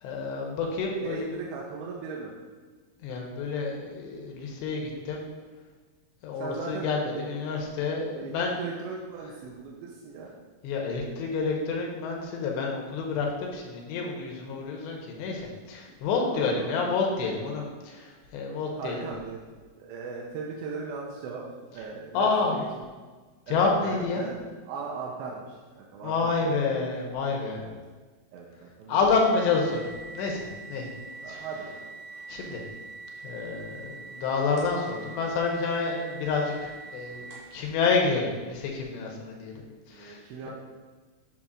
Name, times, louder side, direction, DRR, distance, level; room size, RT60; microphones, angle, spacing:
voice 1, 0.0-1.4 3.0-5.2 6.2-8.5 10.6-19.0 22.1-22.6 23.5-24.2 26.0-27.6 28.9-29.9 30.1-30.9 31.3-31.4 32.3-32.6 33.2-39.6 39.9-40.2, left 4 dB, 80° left, 0 dB, 2.9 m, -28 dB
voice 2, 1.0-2.3 6.4-7.3 8.1-10.3 16.3-16.8 18.8-19.4 19.8-21.5 21.7-22.9 23.5-26.6 27.6-27.8 28.3-29.1 31.2-31.7 39.9-40.5, right 5 dB, 85° right, -2 dB, 2.8 m, -38 dB
sound 1, 29.1-37.6, right 3 dB, 60° right, 3.0 m, -44 dB
8.5 x 7.2 x 2.5 m, 1.4 s
omnidirectional pair, 5.1 m